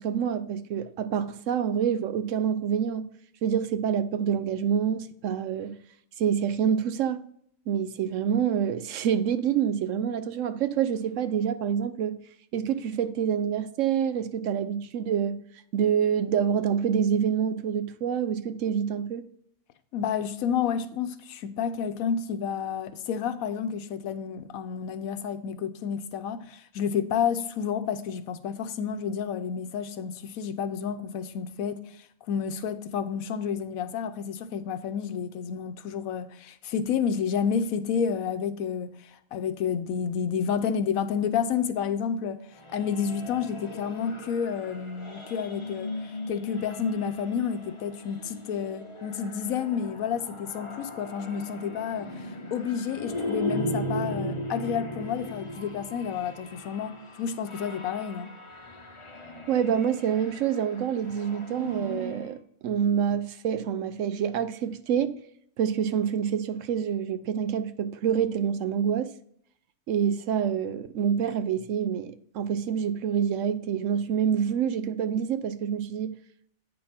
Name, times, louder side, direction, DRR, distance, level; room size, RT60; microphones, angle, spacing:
voice 1, 0.0-3.0 3.4-5.8 6.2-7.2 7.7-12.2 12.5-15.4 15.7-19.2 59.5-62.4 62.6-65.2 65.6-69.1 69.9-76.2, right 8 dB, 70° right, 0.9 m, -27 dB
voice 2, 19.9-31.8 32.3-42.4 42.7-45.9 46.3-58.3, left 7 dB, 80° left, 1.1 m, -30 dB
sound 1, 42.5-62.4, left 1 dB, 25° left, 0.8 m, -38 dB
8.7 x 5.4 x 4.3 m
omnidirectional pair, 1.5 m